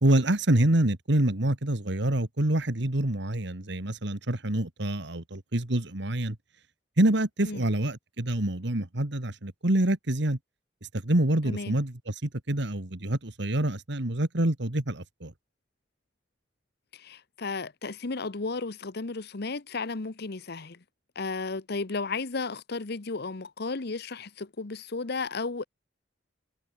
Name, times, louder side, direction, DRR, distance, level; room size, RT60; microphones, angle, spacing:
voice 1, 0.0-6.4 7.0-10.4 11.0-15.3, right 1 dB, 65° right, 2.1 m, -26 dB
voice 2, 16.9-20.8 21.1-25.6, left 3 dB, 60° left, 1.0 m, -34 dB
head